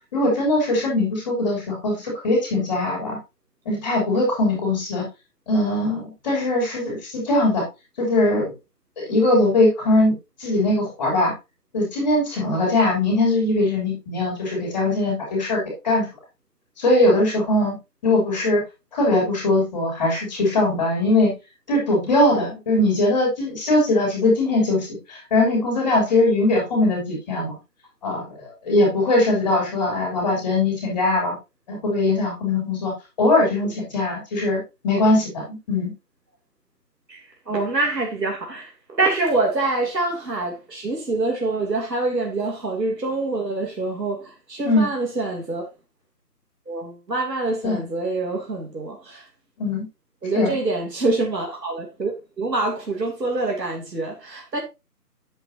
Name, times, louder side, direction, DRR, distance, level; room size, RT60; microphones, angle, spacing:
voice 1, 0.1-3.2 3.6-5.0 5.5-7.6 8.0-8.5 9.0-10.1 10.4-11.3 11.7-16.1 16.8-17.7 18.0-18.6 18.9-21.3 21.7-27.6 28.0-31.3 31.7-32.9 33.2-35.9 44.6-44.9 47.6-47.8 49.6-49.9 50.3-50.5, left 2 dB, 20° left, 3.1 m, -21 dB
voice 2, 37.1-38.7 39.0-45.6 46.7-49.2 50.2-54.6, right 2 dB, 90° right, 3.1 m, -25 dB
9.2 x 7.7 x 2.7 m
figure-of-eight pair, 165°, 48 cm